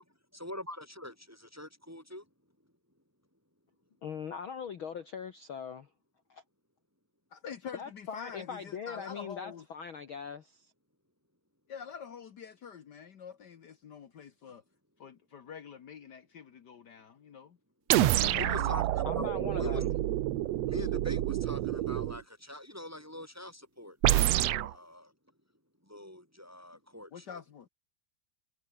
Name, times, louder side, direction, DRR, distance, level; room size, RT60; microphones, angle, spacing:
voice 1, 0.3-2.2 18.4-19.3 19.6-19.8 20.7-25.1 25.9-27.4, left 1 dB, 5° right, 2.6 m, -43 dB
voice 2, 4.0-5.9 6.3-6.4 7.7-10.7 18.0-18.8 19.0-19.9, left 7 dB, 55° left, 1.6 m, -41 dB
voice 3, 7.3-9.6 11.7-14.6 15.0-17.6 27.1-27.7, left 7 dB, 75° left, 0.9 m, -46 dB
sound 1, 17.9-22.2 24.0-24.7, right 14 dB, 70° right, 1.7 m, -28 dB
omnidirectional pair, 3.8 m